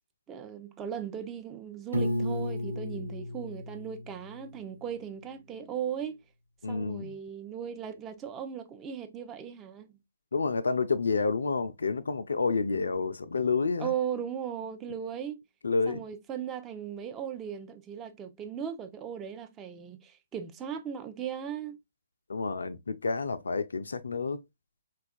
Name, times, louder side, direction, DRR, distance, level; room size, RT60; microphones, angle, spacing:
voice 1, 0.3-6.2 6.7-10.0 13.8-15.4 15.9-21.8, right 8 dB, 20° right, 0.5 m, -37 dB
Piano, 1.9-4.9, left 1 dB, 80° right, 0.8 m, -33 dB
voice 2, 6.6-7.1 10.3-13.9 15.6-16.0 22.3-24.4, left 4 dB, 70° left, 0.3 m, -29 dB
4.2 x 2.3 x 2.5 m
figure-of-eight pair, 130°, 0 cm